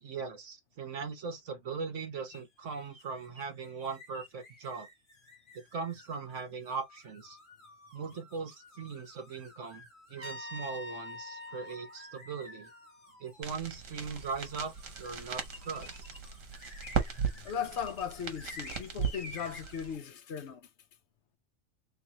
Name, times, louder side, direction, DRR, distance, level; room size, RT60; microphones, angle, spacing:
voice 1, 0.0-4.9 5.5-7.4 7.9-9.8 10.1-12.7 13.2-14.7 15.0-16.0, right 5 dB, 70° right, 1.4 m, -39 dB
sound 1, 2.3-20.0, left 2 dB, 40° left, 1.9 m, -53 dB
Trumpet, 10.2-13.1, left 1 dB, 30° right, 1.1 m, -45 dB
sound 2, 13.4-20.0, right 6 dB, 85° right, 1.4 m, -37 dB
voice 2, 17.4-20.7, left 8 dB, 65° left, 1.0 m, -37 dB
3.4 x 3.3 x 2.9 m
omnidirectional pair, 1.3 m